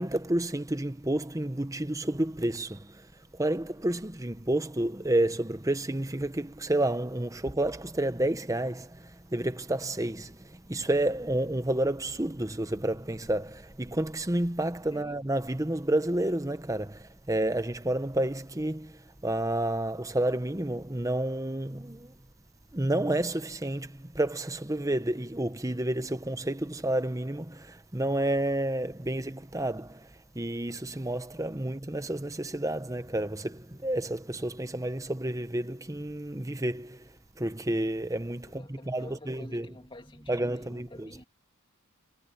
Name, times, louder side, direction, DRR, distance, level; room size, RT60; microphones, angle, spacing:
voice 1, 0.0-3.1 3.3-22.1 22.7-30.1 30.3-37.1 37.4-39.7 40.3-41.1, right 1 dB, 15° right, 1.0 m, -30 dB
voice 2, 14.9-15.2 38.5-41.2, left 1 dB, 25° left, 2.5 m, -49 dB
head